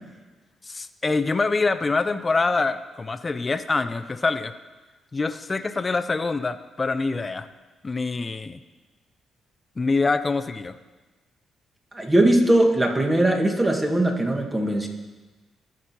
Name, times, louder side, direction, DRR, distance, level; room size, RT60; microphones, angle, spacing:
voice 1, 0.6-4.5 5.1-7.5 7.8-8.6 9.8-10.7, left 3 dB, 35° left, 11 dB, 0.4 m, -25 dB
voice 2, 11.9-14.9, right 1 dB, 20° right, 1 dB, 1.5 m, -20 dB
14.0 x 6.0 x 2.8 m, 1.2 s
supercardioid pair, 55°, 0 cm